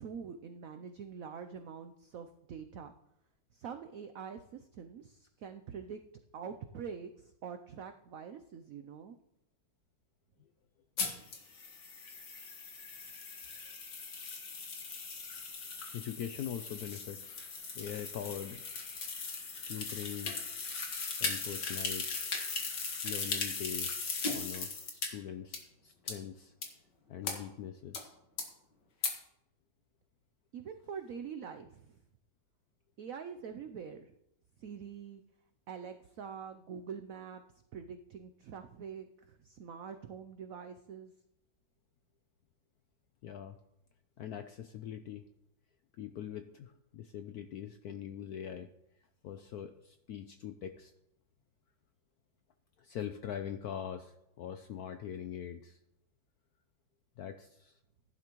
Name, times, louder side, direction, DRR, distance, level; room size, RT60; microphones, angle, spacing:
voice 1, 0.0-2.9 3.5-6.0 6.3-9.2 30.5-32.0 33.0-34.1 34.6-35.2 35.7-37.4 37.7-41.1, right 7 dB, 85° right, 7 dB, 0.7 m, -45 dB
sound 1, 11.0-25.1 25.5-25.6 26.1-26.2 26.6-26.7 27.2-27.3 27.9-28.0 28.4-28.5 29.0-29.1, left 4 dB, 60° left, 2.2 m, -38 dB
voice 2, 15.9-17.5 17.7-18.6 19.7-20.4 20.7-22.2 23.0-26.5 27.1-28.2 43.2-43.6 44.2-45.2 46.0-48.7 49.2-50.9 52.8-55.8 57.2-57.8, left 9 dB, 75° left, 9 dB, 0.8 m, -43 dB
15.5 x 11.0 x 3.0 m, 0.81 s
omnidirectional pair, 2.2 m